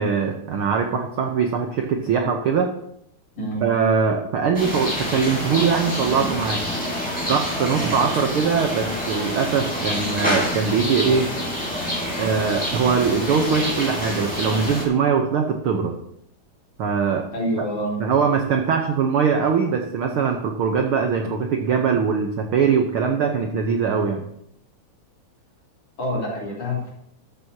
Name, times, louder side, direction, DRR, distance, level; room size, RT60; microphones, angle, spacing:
voice 1, 0.0-2.7 3.6-6.7 7.3-11.3 12.2-16.0 16.8-17.3 18.0-24.2, right 6 dB, 80° right, 3 dB, 1.2 m, -22 dB
sound 1, 4.5-14.8, equal, 5° left, 3.5 m, -27 dB
voice 2, 17.3-18.0 26.0-26.9, equal, 50° left, -4 dB, 4.8 m, -26 dB
14.0 x 12.5 x 2.9 m, 0.74 s
omnidirectional pair, 3.7 m